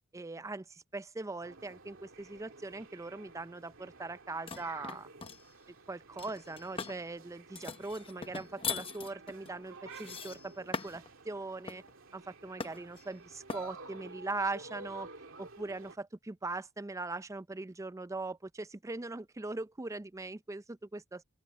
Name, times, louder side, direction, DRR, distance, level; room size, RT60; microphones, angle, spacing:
voice 1, 0.1-5.1 5.9-11.8 12.1-15.1 15.4-21.2, right 3 dB, 15° right, 0.4 m, -40 dB
sound 1, 1.4-16.0, right 3 dB, 70° right, 2.7 m, -52 dB
sound 2, 4.5-5.4 6.2-7.0 7.5-11.1 11.7-11.9 12.6-13.0 13.5-13.7, left 5 dB, 25° left, 0.8 m, -40 dB
open air
head